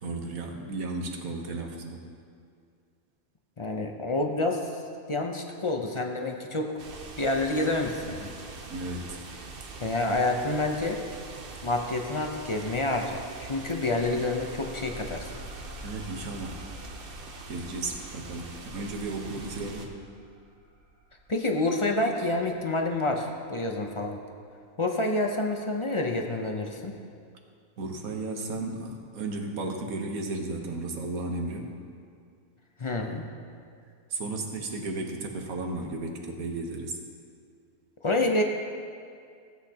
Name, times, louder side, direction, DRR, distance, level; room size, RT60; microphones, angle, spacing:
voice 1, 0.0-2.0 8.7-9.2 15.8-16.6 17.5-19.9 27.8-31.7 34.1-37.0, right 2 dB, 80° right, 2 dB, 1.5 m, -34 dB
voice 2, 3.6-4.8 5.1-6.7 7.2-8.3 9.8-11.0 11.6-15.3 21.3-24.2 24.8-26.9 32.8-33.3 38.0-38.4, left 2 dB, 35° left, 2 dB, 0.5 m, -28 dB
sound 1, 6.8-19.9, right 3 dB, 45° right, 0.9 m, -43 dB
sound 2, 14.1-23.3, left 1 dB, 65° right, 1.6 m, -48 dB
16.5 x 8.3 x 2.9 m, 2.3 s
omnidirectional pair, 1.5 m